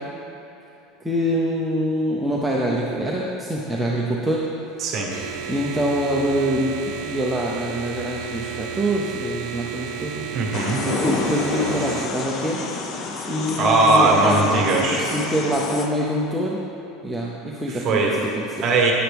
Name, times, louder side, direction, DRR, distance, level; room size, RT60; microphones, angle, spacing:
voice 1, 1.0-4.4 5.5-10.3 10.8-12.8 13.3-16.6 17.0-18.6, equal, 5° right, -5 dB, 0.6 m, -25 dB
voice 2, 4.8-5.1 10.3-10.9 13.6-15.1 17.7-18.2 18.6-18.9, right 2 dB, 35° right, 0 dB, 1.4 m, -19 dB
sound 1, 5.1-12.1, right 7 dB, 55° right, 0.6 m, -33 dB
sound 2, 10.5-15.9, left 3 dB, 35° left, 0.7 m, -29 dB
10.5 x 9.3 x 3.5 m, 2.9 s
cardioid pair, 165°, 0 cm